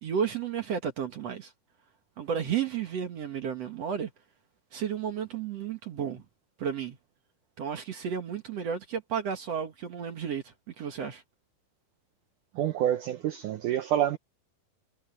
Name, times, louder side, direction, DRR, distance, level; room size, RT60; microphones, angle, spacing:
voice 1, 0.0-1.5 2.2-4.1 4.7-6.3 6.6-7.0 7.6-11.2, right 7 dB, 55° right, 2.0 m, -32 dB
voice 2, 12.5-14.2, right 11 dB, 90° right, 1.8 m, -27 dB
omnidirectional pair, 4.6 m